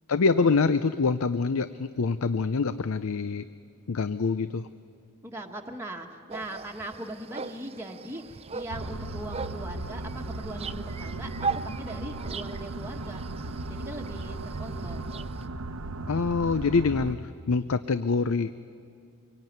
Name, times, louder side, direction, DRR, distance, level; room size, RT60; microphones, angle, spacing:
voice 1, 0.1-3.5 3.9-4.7 16.1-18.5, left 4 dB, 70° left, 13 dB, 0.5 m, -25 dB
voice 2, 5.2-11.3 11.6-13.2 13.7-15.1, right 1 dB, 10° right, 0 dB, 1.4 m, -40 dB
sound 1, 6.3-15.5, right 5 dB, 25° right, 0.5 m, -39 dB
sound 2, 8.7-17.2, right 2 dB, 70° right, 0.8 m, -36 dB
25.0 x 23.0 x 9.3 m, 2.5 s
head